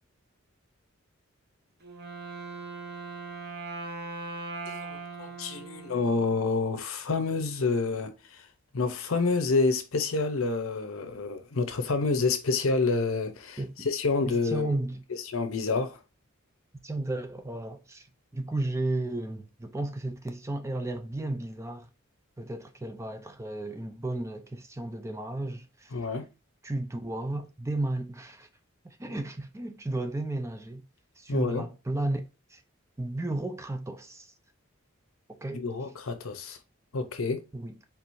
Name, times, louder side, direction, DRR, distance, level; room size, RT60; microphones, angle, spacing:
Wind instrument woodwind instrument, 1.8-6.7, right 3 dB, 50° right, 1.0 m, -40 dB
voice 1, 4.7-8.5 8.7-14.7 15.1-16.0 25.9-26.3 31.3-31.7 35.5-36.6 36.9-37.4, left 4 dB, 80° left, 0.7 m, -28 dB
voice 2, 14.4-15.0 16.8-18.1 18.3-21.9 22.4-26.0 26.6-28.5 28.8-30.8 31.2-32.2 32.5-32.6 33.0-34.3 35.3-35.6 37.5-37.7, right 2 dB, 15° right, 0.5 m, -33 dB
4.6 x 3.7 x 2.6 m
head